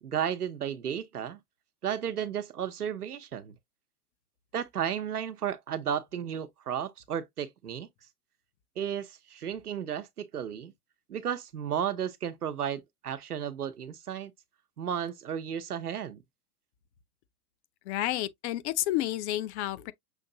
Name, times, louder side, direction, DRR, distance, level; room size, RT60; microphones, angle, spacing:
voice 1, 0.0-1.4 1.8-3.6 4.5-7.9 8.8-10.7 11.1-14.3 14.8-16.2, right 9 dB, 85° right, 0.9 m, -33 dB
voice 2, 17.9-19.9, left 14 dB, 50° left, 0.7 m, -30 dB
6.4 x 2.6 x 2.7 m
hypercardioid pair, 95°, 45 cm